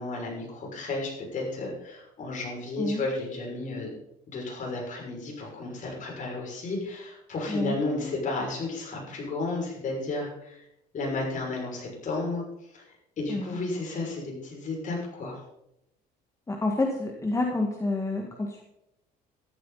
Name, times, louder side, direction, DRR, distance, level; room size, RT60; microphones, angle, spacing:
voice 1, 0.0-3.9 4.3-10.6 10.9-12.4 12.7-12.8 13.2-15.4, left 2 dB, 50° left, -1 dB, 6.3 m, -33 dB
voice 2, 16.5-18.6, left 2 dB, 20° left, 2 dB, 1.8 m, -28 dB
13.5 x 12.5 x 4.2 m, 0.82 s
cardioid pair, 110°, 17 cm